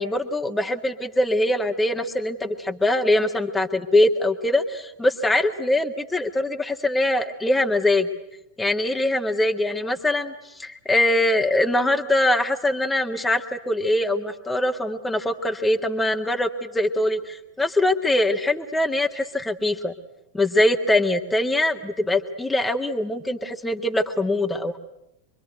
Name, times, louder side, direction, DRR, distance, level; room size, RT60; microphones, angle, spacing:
voice 1, 0.0-8.1 8.6-10.3 10.6-19.9 20.3-24.8, left 1 dB, 10° left, 5 dB, 1.8 m, -22 dB
26.5 x 24.0 x 9.3 m, 0.83 s
figure-of-eight pair, 90°, 0 cm